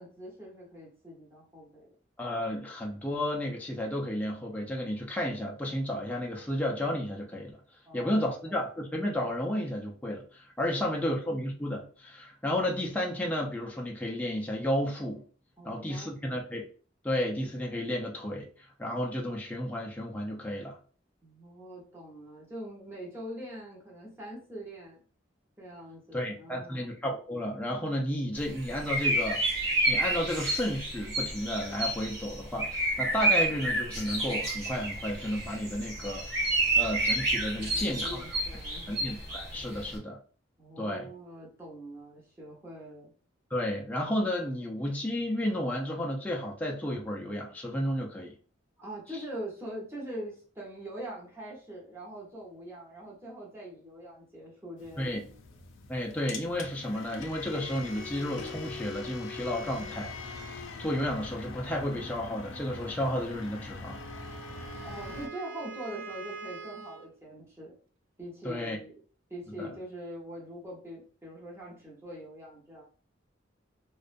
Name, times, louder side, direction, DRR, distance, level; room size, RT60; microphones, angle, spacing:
voice 1, 0.0-1.9 7.9-8.5 10.6-11.2 15.6-16.4 21.2-25.0 25.6-26.9 37.6-39.0 40.6-43.1 48.8-55.3 64.8-67.7 68.2-68.9 69.3-72.8, right 1 dB, 15° right, 0.7 m, -43 dB
voice 2, 2.2-7.5 7.9-15.2 15.6-16.6 17.0-18.5 18.8-20.8 26.1-29.5 29.9-36.4 36.8-38.2 38.9-40.2 40.8-41.1 43.5-48.3 55.0-55.2 55.9-60.4 60.8-64.0 68.4-68.8 69.6-69.7, left 1 dB, 10° left, 0.3 m, -32 dB
sound 1, 28.4-40.0, right 2 dB, 55° right, 1.0 m, -30 dB
sound 2, 54.8-65.3, left 4 dB, 90° left, 0.4 m, -42 dB
Wind instrument woodwind instrument, 63.9-67.1, right 6 dB, 80° right, 0.4 m, -44 dB
2.4 x 2.1 x 2.5 m
head